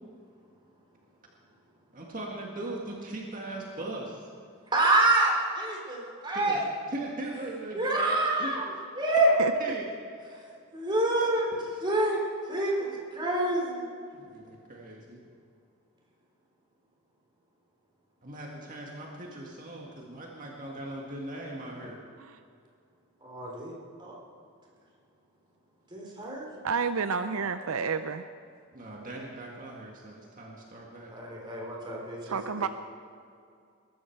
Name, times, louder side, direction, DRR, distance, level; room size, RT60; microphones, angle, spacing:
voice 1, 1.9-4.3 6.3-6.6 6.9-8.1 8.4-8.5 9.6-9.9 14.1-15.2 18.2-22.0 28.7-31.1, right 1 dB, 40° right, -2 dB, 1.8 m, -39 dB
voice 2, 4.7-6.6 7.7-9.3 10.3-10.4 10.7-12.2 12.5-13.9 23.2-23.7 24.0-24.1 25.9-26.5 31.1-32.7, right 2 dB, 20° right, -2 dB, 3.7 m, -27 dB
voice 3, 26.6-28.3 32.3-32.7, right 5 dB, 75° right, 10 dB, 0.5 m, -29 dB
21.5 x 13.5 x 4.6 m, 2.4 s
head